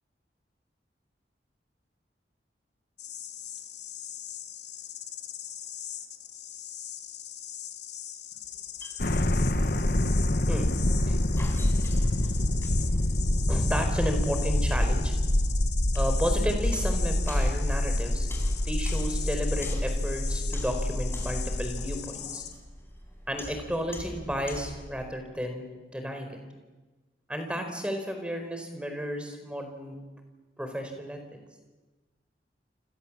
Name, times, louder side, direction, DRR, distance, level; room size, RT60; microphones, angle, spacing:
sound 1, 3.0-22.5, left 10 dB, 80° left, 2.7 m, -40 dB
sound 2, 8.4-25.1, left 1 dB, 15° left, 4.9 m, -45 dB
sound 3, 9.0-22.0, left 1 dB, 55° left, 1.3 m, -26 dB
voice 1, 13.5-15.1 15.9-18.3 18.6-22.4 23.3-25.6 25.9-26.4 27.3-30.0 30.6-31.2, equal, 5° right, 5 dB, 4.5 m, -32 dB
29.0 x 26.5 x 7.5 m, 1.2 s
head